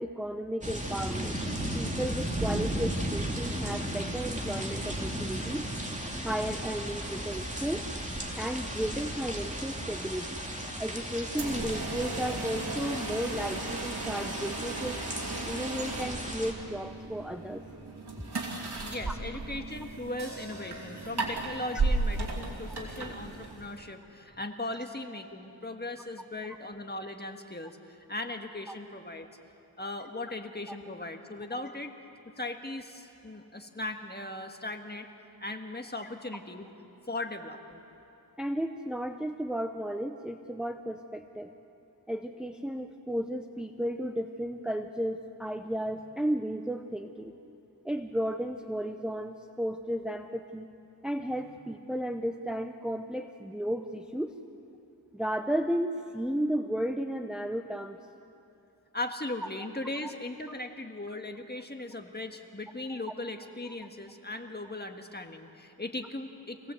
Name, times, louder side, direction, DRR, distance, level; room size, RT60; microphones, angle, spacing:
voice 1, 0.0-1.4 1.7-5.6 6.2-7.9 8.4-10.4 10.8-15.0 15.4-17.6 19.1-19.2 30.7-30.8 38.4-41.5 42.1-47.3 47.8-50.7 51.0-54.4 55.1-58.0 60.0-60.1 63.7-63.8, equal, ahead, 6 dB, 0.8 m, -34 dB
sound 1, 0.6-16.5, right 1 dB, 20° right, 2.8 m, -35 dB
sound 2, 11.3-23.9, right 3 dB, 80° right, 2.8 m, -35 dB
voice 2, 18.8-29.3 29.8-32.0 32.2-35.1 35.4-36.6 37.1-37.8 58.9-66.7, left 2 dB, 25° left, 5 dB, 1.6 m, -38 dB
sound 3, 20.2-24.5, right 1 dB, 40° right, 3.9 m, -51 dB
25.5 x 17.5 x 7.9 m, 2.8 s
wide cardioid pair, 65°, 39 cm